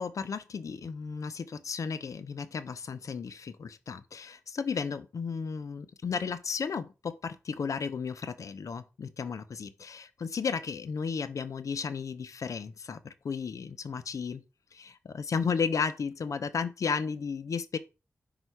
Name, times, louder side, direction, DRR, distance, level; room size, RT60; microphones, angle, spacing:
voice 1, 0.0-14.4 14.7-17.8, left 5 dB, 75° left, 0.6 m, -34 dB
5.5 x 4.0 x 4.6 m
cardioid pair, 50°, 6 cm